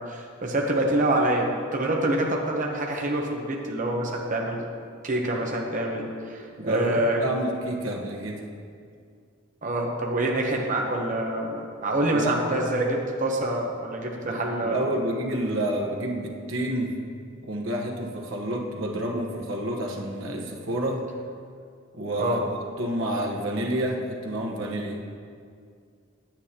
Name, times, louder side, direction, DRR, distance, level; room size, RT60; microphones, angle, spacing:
voice 1, 0.0-4.6 5.0-7.2 9.6-14.8 22.2-22.4, right 1 dB, 40° right, 0 dB, 0.9 m, -26 dB
voice 2, 6.6-8.4 12.1-12.4 14.2-17.0 17.4-21.1 21.9-22.4 22.8-25.0, right 1 dB, 80° right, 0 dB, 1.2 m, -29 dB
9.4 x 8.8 x 2.9 m, 2.3 s
head